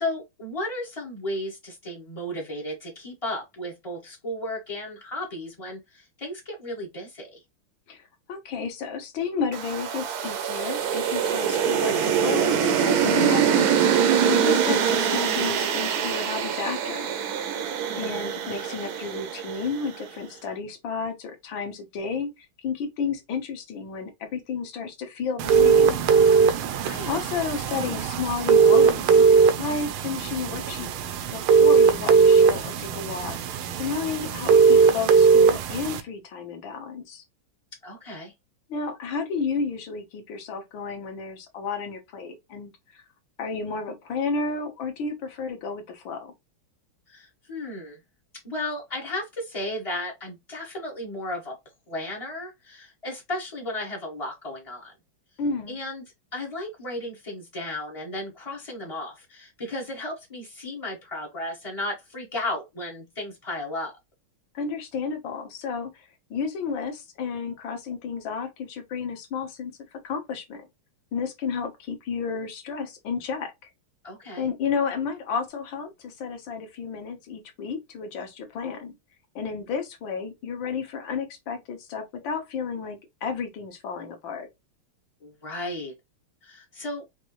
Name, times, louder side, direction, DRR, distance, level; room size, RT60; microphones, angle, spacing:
voice 1, 0.0-7.4 17.8-18.3 26.8-27.1 37.8-38.3 47.1-48.0 48.4-51.6 51.9-54.9 55.7-56.0 56.3-63.9 74.0-74.5 85.2-85.9 86.4-87.0, left 1 dB, 30° left, 0.6 m, -34 dB
voice 2, 7.9-17.1 18.0-26.0 27.0-29.2 29.6-30.9 31.3-37.2 38.7-43.0 43.4-46.3 55.4-55.8 64.5-70.7 71.1-73.7 74.4-78.9 79.3-84.5, left 5 dB, 70° left, 1.7 m, -32 dB
sound 1, 9.5-19.9, right 8 dB, 65° right, 1.0 m, -24 dB
sound 2, 25.4-36.0, right 6 dB, 85° right, 1.5 m, -19 dB
5.3 x 2.6 x 3.0 m
omnidirectional pair, 2.3 m